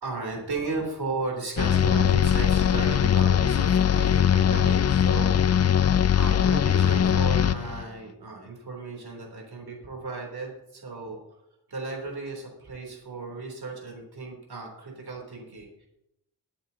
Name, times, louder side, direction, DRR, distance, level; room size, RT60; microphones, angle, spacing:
voice 1, 0.0-5.4 6.1-11.2 11.7-15.9, right 3 dB, 65° right, -1 dB, 3.4 m, -35 dB
sound 1, 1.6-7.8, left 9 dB, 40° left, 0.4 m, -21 dB
22.0 x 8.7 x 2.9 m, 0.83 s
wide cardioid pair, 80°, 40 cm